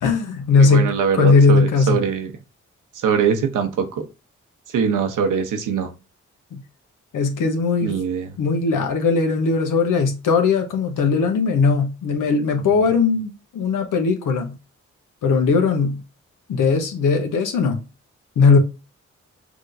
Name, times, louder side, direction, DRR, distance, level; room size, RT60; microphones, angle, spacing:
voice 1, 0.0-0.9 1.1-2.0 6.5-6.6 7.1-7.9 8.4-14.5 15.2-16.0 16.5-17.8 18.4-18.6, left 4 dB, 85° left, 1.0 m, -18 dB
voice 2, 0.6-2.3 2.9-4.1 4.7-5.9 7.8-8.4 12.6-12.9, right 6 dB, 90° right, 0.8 m, -22 dB
6.0 x 3.0 x 2.6 m
supercardioid pair, 50°, 31 cm